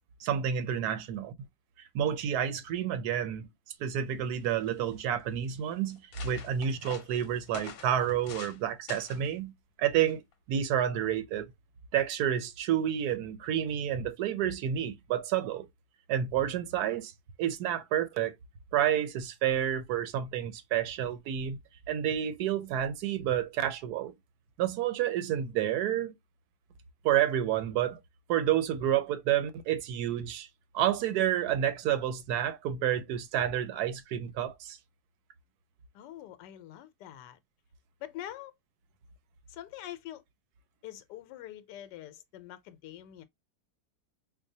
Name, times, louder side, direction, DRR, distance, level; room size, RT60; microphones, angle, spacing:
voice 1, 0.2-1.3 1.8-3.5 3.8-9.5 9.8-10.2 10.5-11.5 11.9-15.7 16.1-17.1 17.4-18.3 18.7-21.6 21.9-24.2 24.6-26.1 27.0-28.0 28.3-30.5 30.7-34.8, right 10 dB, 70° right, 1.1 m, -29 dB
sound 1, 4.0-4.1 4.3-4.9 5.5-5.6 5.9-8.6 8.9-9.3 10.1-10.3, left 7 dB, 65° left, 1.1 m, -47 dB
voice 2, 35.9-37.4 38.0-38.5 39.5-40.2 40.8-43.2, left 12 dB, 85° left, 1.2 m, -44 dB
4.5 x 2.2 x 2.7 m
omnidirectional pair, 1.8 m